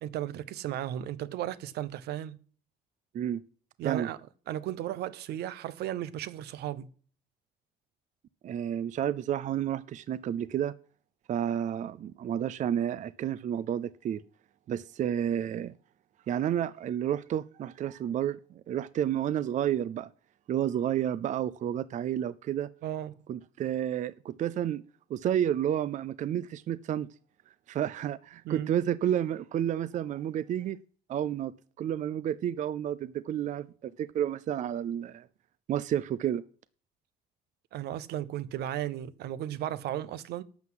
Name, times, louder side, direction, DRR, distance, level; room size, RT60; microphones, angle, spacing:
voice 1, 0.0-2.4 3.8-4.2 4.5-6.9 22.8-23.2 28.4-28.7 37.7-40.4, right 12 dB, 75° right, 0.8 m, -35 dB
voice 2, 8.4-10.7 11.3-14.2 14.7-15.7 16.3-20.1 20.5-22.7 23.3-24.8 25.1-27.1 27.7-30.8 31.1-31.5 31.8-35.3 35.7-36.4, right 10 dB, 45° right, 0.5 m, -30 dB
12.0 x 5.8 x 7.7 m
cardioid pair, 110°, 17 cm